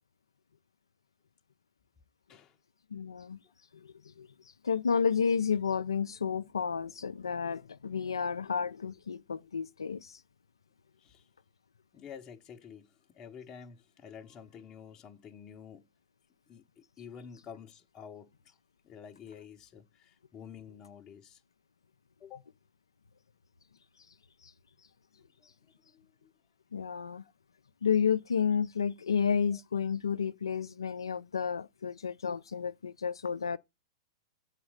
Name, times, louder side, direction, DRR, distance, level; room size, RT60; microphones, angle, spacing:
voice 1, 2.9-3.4 3.8-4.3 4.6-10.1 26.7-27.2 27.8-33.6, left 6 dB, 85° left, 0.4 m, -31 dB
voice 2, 11.9-15.9 16.5-18.5 18.8-21.4 22.2-22.5 25.4-25.5 25.9-26.3 29.5-29.6, left 7 dB, 30° left, 0.7 m, -50 dB
7.8 x 4.0 x 6.4 m
hypercardioid pair, 105°, 2 cm